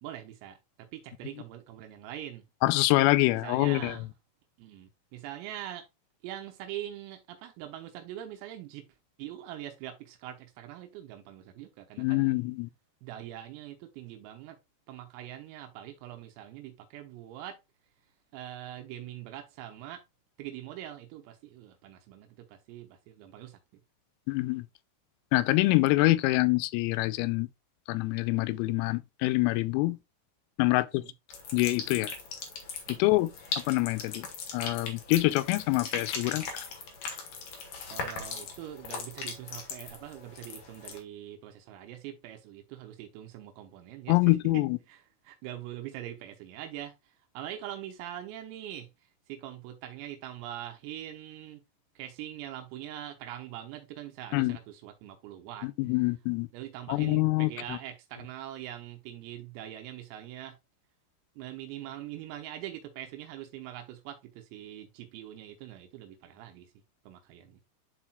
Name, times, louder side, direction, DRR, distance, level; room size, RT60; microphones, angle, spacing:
voice 1, 0.0-2.5 3.4-4.1 4.6-5.9 6.2-8.9 9.2-12.4 13.0-14.6 14.9-17.6 18.3-20.0 20.4-23.6 30.6-31.1 32.9-33.0 37.9-44.6 44.9-48.9 49.3-51.6 52.0-55.7 56.5-60.6 61.4-66.7 67.1-67.6, right 12 dB, 85° right, 3.6 m, -43 dB
voice 2, 2.6-4.0 12.0-12.7 24.3-24.7 25.3-27.5 27.9-30.0 30.6-31.0 31.5-32.1 32.9-33.3 33.6-34.3 34.5-36.6 44.1-44.8 54.3-54.6 55.6-56.5 56.9-57.8, left 20 dB, 85° left, 3.2 m, -25 dB
sound 1, 31.3-41.0, left 5 dB, 60° left, 2.3 m, -39 dB
11.5 x 4.3 x 2.3 m
omnidirectional pair, 6.0 m